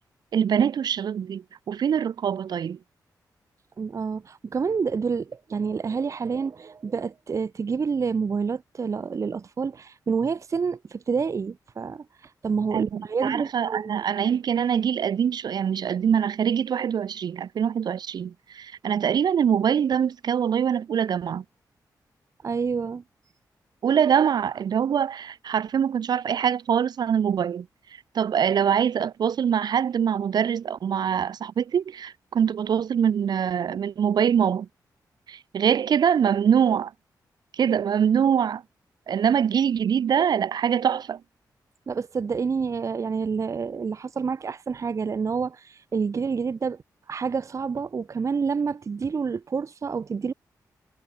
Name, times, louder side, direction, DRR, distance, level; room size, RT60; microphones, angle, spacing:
voice 1, 0.3-2.8 12.7-21.4 23.8-34.7 35.3-36.9 37.5-38.6 39.1-41.2, right 8 dB, 75° right, 1.2 m, -24 dB
voice 2, 3.8-14.0 22.4-23.0 41.9-46.8 47.1-50.3, right 5 dB, 45° right, 0.7 m, -28 dB
cardioid pair, 80°, 7 cm